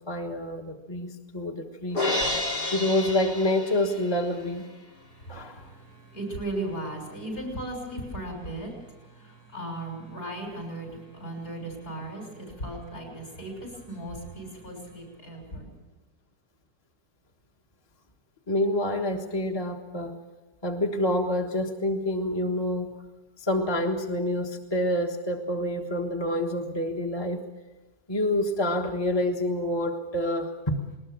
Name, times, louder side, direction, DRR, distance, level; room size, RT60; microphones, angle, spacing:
voice 1, 0.1-2.1 2.7-4.7 5.3-5.7 18.5-20.2 20.6-22.9 23.4-27.4 28.1-30.5, left 1 dB, 15° left, 1 dB, 1.4 m, -27 dB
Crash cymbal, 2.0-4.2, left 2 dB, 75° left, 4.5 m, -29 dB
voice 2, 5.0-15.7, right 1 dB, 60° left, 1 dB, 7.2 m, -37 dB
21.0 x 19.5 x 7.4 m, 1.2 s
omnidirectional pair, 1.7 m